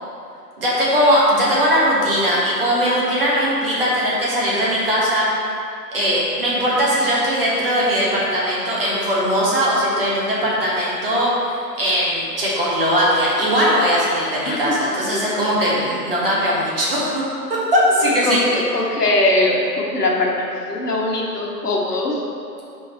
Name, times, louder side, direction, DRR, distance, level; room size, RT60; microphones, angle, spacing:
voice 1, 0.6-5.3 5.9-11.3 11.8-17.2 17.5-18.4, equal, 35° right, -6 dB, 1.5 m, -19 dB
voice 2, 14.4-14.8 15.1-15.3 18.2-22.2, left 2 dB, 65° left, -2 dB, 1.5 m, -21 dB
6.2 x 4.2 x 5.6 m, 2.5 s
hypercardioid pair, 170°, 49 cm